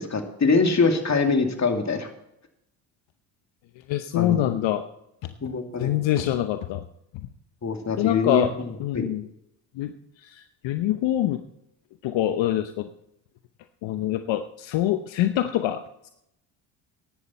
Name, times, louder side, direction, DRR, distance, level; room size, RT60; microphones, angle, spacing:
voice 1, 0.0-2.1 4.2-4.6 5.4-5.9 7.6-8.5 8.9-9.0, left 4 dB, 35° left, 5 dB, 2.5 m, -23 dB
voice 2, 3.9-4.8 5.8-6.8 8.0-8.5 8.8-9.3 9.8-9.9 10.2-11.4 12.0-12.9 13.8-15.8, left 13 dB, 70° left, 9 dB, 0.9 m, -25 dB
14.5 x 11.0 x 4.3 m, 0.79 s
supercardioid pair, 65°, 46 cm